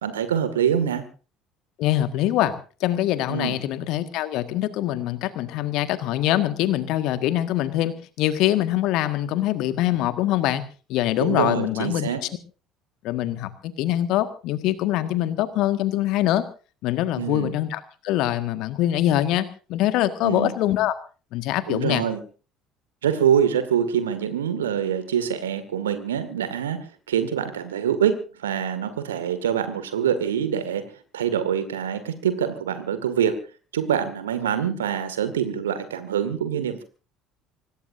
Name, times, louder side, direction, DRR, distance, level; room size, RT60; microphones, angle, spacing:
voice 1, 0.0-1.0 3.3-3.6 11.2-12.2 17.2-17.6 20.2-20.5 21.7-22.2 23.0-30.9 31.1-33.4 33.7-36.8, right 8 dB, 75° right, 11 dB, 2.1 m, -25 dB
voice 2, 1.8-2.5 2.8-10.6 10.9-12.1 13.0-16.4 16.8-20.9 21.3-22.0, left 13 dB, 55° left, 10 dB, 1.7 m, -24 dB
25.0 x 19.0 x 2.7 m, 0.38 s
figure-of-eight pair, 60°, 0 cm